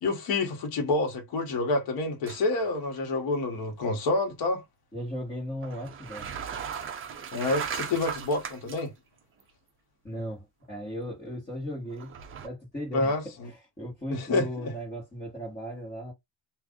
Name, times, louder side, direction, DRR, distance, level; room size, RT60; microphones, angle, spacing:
voice 1, 0.0-4.6 7.3-8.9 12.9-13.5 14.1-14.7, left 2 dB, 55° left, 1.1 m, -28 dB
sound 1, 2.3-2.7 2.9-3.1 5.6-8.8 9.4-9.5 11.9-12.5, right 7 dB, 30° right, 0.4 m, -37 dB
voice 2, 4.9-6.3 10.0-12.1 12.4-16.1, equal, 15° left, 1.3 m, -37 dB
2.5 x 2.5 x 3.5 m
cardioid pair, 160°, 45 cm